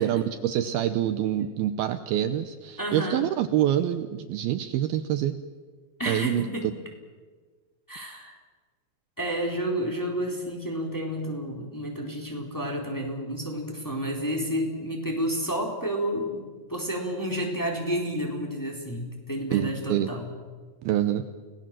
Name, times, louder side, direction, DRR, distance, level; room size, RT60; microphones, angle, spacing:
voice 1, 0.0-5.3 6.1-6.4 19.5-20.1 20.8-21.3, right 11 dB, 75° right, 10 dB, 2.6 m, -26 dB
voice 2, 2.8-3.2 6.0-6.7 7.9-8.4 9.2-20.3, equal, 5° left, 1 dB, 3.5 m, -30 dB
29.5 x 19.5 x 7.6 m, 1.5 s
omnidirectional pair, 4.8 m